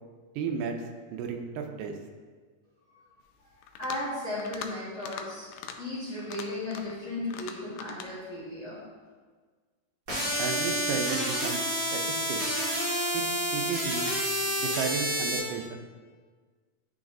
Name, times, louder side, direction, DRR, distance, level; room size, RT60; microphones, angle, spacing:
voice 1, 0.4-0.8 1.1-2.0 10.4-11.7 11.9-12.5 13.1-13.2 13.5-14.1 14.6-15.7, right 6 dB, 85° right, 4 dB, 2.2 m, -33 dB
sound 1, 3.6-4.1 4.4-4.7 5.0-5.3 5.5-5.8 6.2-7.0 7.3-8.1, left 8 dB, 85° left, 2.1 m, -41 dB
voice 2, 3.8-8.8, left 2 dB, 65° left, -10 dB, 0.7 m, -35 dB
sound 2, 10.1-15.4, equal, 35° right, 2.0 m, -29 dB
11.0 x 3.9 x 2.6 m, 1.5 s
omnidirectional pair, 3.8 m